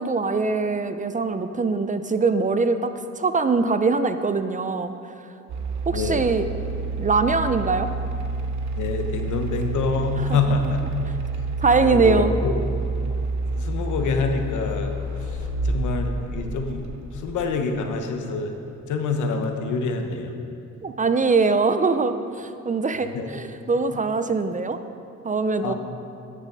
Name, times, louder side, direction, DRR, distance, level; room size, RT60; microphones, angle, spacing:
voice 1, 0.0-4.9 5.9-6.5 7.0-7.9 10.2-10.6 11.6-12.4 20.8-24.8 25.2-25.7, right 4 dB, 25° right, 10 dB, 0.5 m, -22 dB
sound 1, 5.5-17.8, right 2 dB, 70° right, 1.0 m, -29 dB
voice 2, 5.9-6.3 8.7-11.1 11.8-12.5 13.5-14.9 15.3-15.4 15.6-16.9 17.1-18.5 18.9-20.3 23.1-23.3 25.6-25.7, left 4 dB, 75° left, 5 dB, 1.2 m, -26 dB
11.5 x 7.4 x 5.5 m, 2.6 s
cardioid pair, 90°, 30 cm